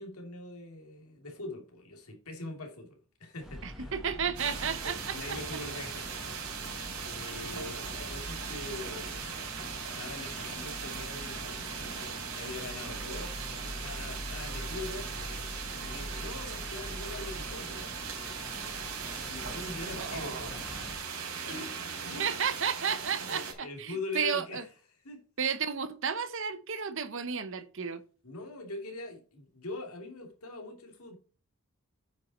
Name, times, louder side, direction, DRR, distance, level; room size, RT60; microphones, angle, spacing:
voice 1, 0.0-4.0 5.1-6.2 7.0-9.1 10.0-11.7 12.3-15.1 15.8-17.8 19.3-21.0 21.4-22.3 23.3-24.6 25.0-25.2 28.2-31.2, left 2 dB, 80° left, 2.9 m, -42 dB
sound 1, 3.4-20.9, equal, ahead, 1.5 m, -44 dB
voice 2, 3.6-5.4 20.0-20.5 22.2-24.6 25.4-28.0, right 7 dB, 60° right, 0.9 m, -33 dB
sound 2, 4.4-23.5, right 6 dB, 85° right, 3.4 m, -39 dB
9.0 x 5.6 x 4.3 m
head